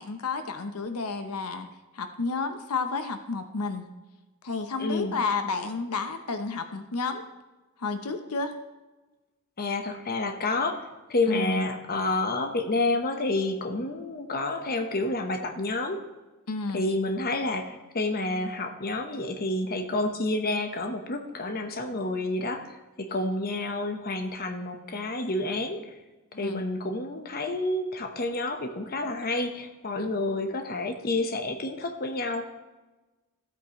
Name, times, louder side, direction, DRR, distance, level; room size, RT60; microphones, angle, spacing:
voice 1, 0.0-1.7 1.9-3.9 4.4-7.2 7.8-8.5 11.3-11.6 16.5-16.8 23.1-23.2 26.3-26.6 30.0-30.2, left 4 dB, 85° left, 8 dB, 0.8 m, -31 dB
voice 2, 4.8-5.2 9.6-16.0 16.7-25.9 26.4-32.4, left 2 dB, 40° left, 5 dB, 1.0 m, -29 dB
15.5 x 8.3 x 3.1 m, 1.2 s
head